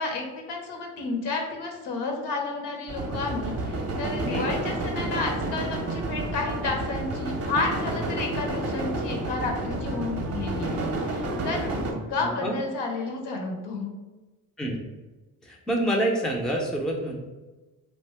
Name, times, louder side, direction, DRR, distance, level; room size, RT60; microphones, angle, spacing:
voice 1, 0.0-11.8 12.1-13.9, left 3 dB, 65° left, 2 dB, 0.8 m, -31 dB
sound 1, 2.9-11.9, right 2 dB, 35° right, 0.7 m, -30 dB
Wind instrument woodwind instrument, 5.4-12.9, right 5 dB, 70° right, 0.5 m, -45 dB
voice 2, 12.1-12.6 14.6-14.8 15.4-17.2, right 1 dB, ahead, 1 dB, 0.5 m, -27 dB
2.6 x 2.2 x 3.3 m, 1.2 s
hypercardioid pair, 50°, 45 cm